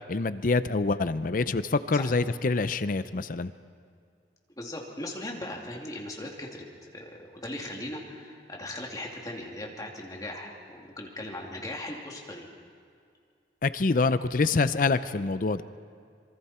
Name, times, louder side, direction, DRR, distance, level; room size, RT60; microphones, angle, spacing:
voice 1, 0.1-3.5 13.6-15.6, left 3 dB, 50° left, 13 dB, 0.6 m, -26 dB
voice 2, 4.6-12.5, left 1 dB, 20° left, -1 dB, 2.7 m, -39 dB
26.0 x 24.0 x 4.4 m, 2.3 s
head